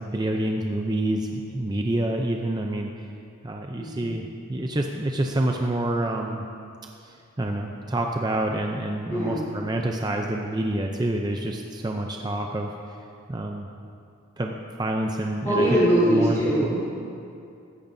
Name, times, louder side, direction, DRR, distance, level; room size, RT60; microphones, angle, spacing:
voice 1, 0.0-2.9 3.4-6.4 7.0-12.7 13.3-13.7 14.4-15.7 16.1-16.7, right 1 dB, 20° right, 2 dB, 0.5 m, -27 dB
voice 2, 3.8-4.1 9.1-9.4 15.4-16.8, equal, 15° left, -11 dB, 3.3 m, -22 dB
15.5 x 13.5 x 2.7 m, 2.5 s
head